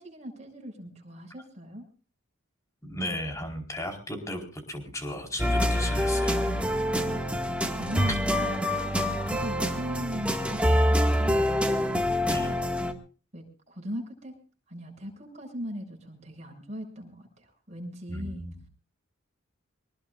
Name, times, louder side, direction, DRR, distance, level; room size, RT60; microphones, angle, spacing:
voice 1, 0.0-1.9 6.4-7.4 7.8-8.9 9.2-11.6 12.1-12.9 13.3-14.3 14.7-18.4, equal, 35° right, 2 dB, 6.7 m, -39 dB
voice 2, 2.8-6.4 12.2-12.6 18.1-18.5, left 1 dB, 15° left, 3 dB, 4.6 m, -35 dB
sound 1, 5.4-12.9, equal, 5° right, 1.9 m, -26 dB
25.0 x 20.0 x 2.5 m, 0.38 s
head